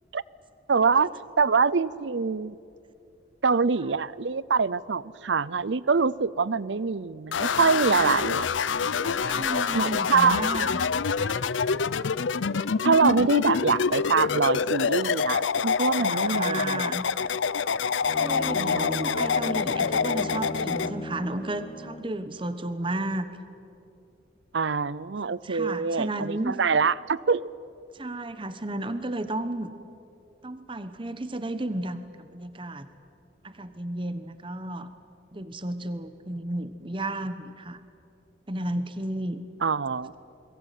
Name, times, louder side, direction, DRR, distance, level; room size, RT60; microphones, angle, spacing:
voice 1, 0.7-1.1 1.4-2.6 3.4-8.5 9.7-10.4 12.8-16.9 18.6-19.2 24.5-27.4 39.6-40.1, right 5 dB, 75° right, 21 dB, 0.6 m, -24 dB
sound 1, 7.3-20.9, left 5 dB, 90° left, 0.6 m, -26 dB
voice 2, 9.0-10.9 11.2-11.4 16.0-17.1 18.1-23.3 25.4-26.6 27.9-29.7 30.4-32.9 33.4-34.9 35.3-37.8 38.5-39.4, right 1 dB, 25° right, 11 dB, 1.1 m, -33 dB
Bowed string instrument, 18.0-22.2, left 1 dB, 30° left, 0.8 m, -38 dB
29.5 x 22.0 x 9.2 m, 2.7 s
head